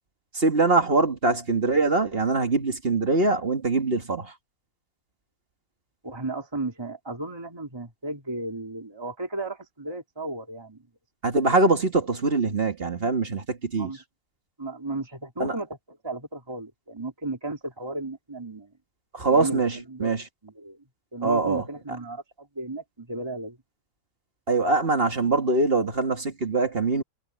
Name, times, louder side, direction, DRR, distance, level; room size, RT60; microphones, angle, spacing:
voice 1, 0.3-4.3 11.2-13.9 15.4-15.5 19.1-20.2 21.2-21.6 24.5-27.0, right 3 dB, 35° right, 2.1 m, -23 dB
voice 2, 6.0-10.9 13.8-14.0 14.6-18.7 19.3-19.6 19.9-20.2 20.4-20.8 21.1-23.6, right 2 dB, 15° right, 3.1 m, -34 dB
omnidirectional pair, 1.8 m